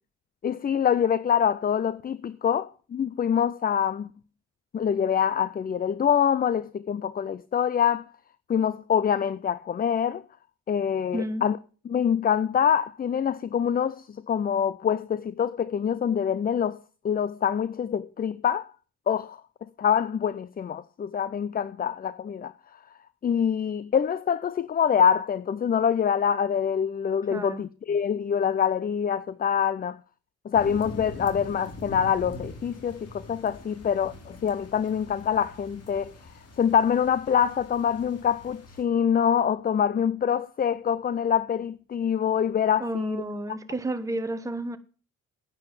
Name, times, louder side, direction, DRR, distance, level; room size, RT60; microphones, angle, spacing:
voice 1, 0.4-4.1 4.7-8.0 8.5-10.2 10.7-11.6 11.9-18.7 19.1-19.4 19.8-22.5 23.2-30.0 30.4-36.1 36.6-43.2, left 8 dB, 30° left, 0.5 m, -25 dB
voice 2, 11.1-11.5 27.3-27.7 42.8-44.8, right 1 dB, 10° right, 1.1 m, -31 dB
sound 1, 30.5-38.8, left 2 dB, 55° left, 2.9 m, -43 dB
9.9 x 9.1 x 7.3 m
cardioid pair, 90°, 30 cm